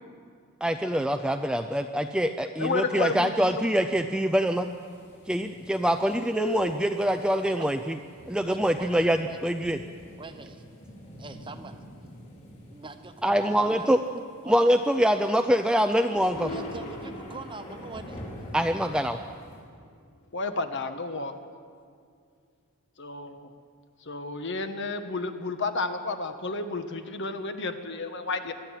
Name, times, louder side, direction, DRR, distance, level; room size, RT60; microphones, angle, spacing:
voice 1, 0.6-4.7 5.3-8.0 8.3-9.8 13.2-14.0 14.5-16.5 18.5-19.2, equal, 5° right, 6 dB, 0.4 m, -24 dB
voice 2, 2.6-3.3 20.3-21.3 23.0-23.5 24.0-28.5, left 3 dB, 50° left, 8 dB, 1.4 m, -31 dB
sound 1, 4.2-19.6, equal, 30° left, 4.9 m, -46 dB
sound 2, 6.1-10.0 10.7-10.8 16.0-20.3, left 3 dB, 70° left, 1.4 m, -42 dB
voice 3, 7.3-7.7 8.4-9.4 10.2-10.6 11.2-11.8 12.7-14.1 14.4-14.6 16.5-18.2, right 3 dB, 20° right, 8 dB, 1.0 m, -43 dB
22.5 x 13.5 x 9.1 m, 2.2 s
head